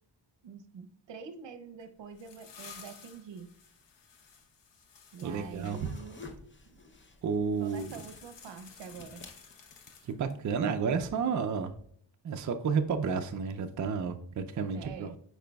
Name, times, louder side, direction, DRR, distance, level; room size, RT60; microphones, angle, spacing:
voice 1, 0.4-3.5 5.1-6.3 7.6-9.2 14.7-15.2, right 6 dB, 75° right, 10 dB, 0.7 m, -46 dB
sound 1, 1.8-5.8 7.5-10.4, left 6 dB, 75° left, 1.0 m, -53 dB
voice 2, 5.2-5.9 7.2-7.9 10.1-11.7 12.2-15.1, right 6 dB, 45° right, 6 dB, 0.4 m, -31 dB
sound 2, 5.3-10.0, left 3 dB, 25° left, 0.7 m, -52 dB
8.9 x 4.7 x 2.3 m, 0.64 s
wide cardioid pair, 130°, 44 cm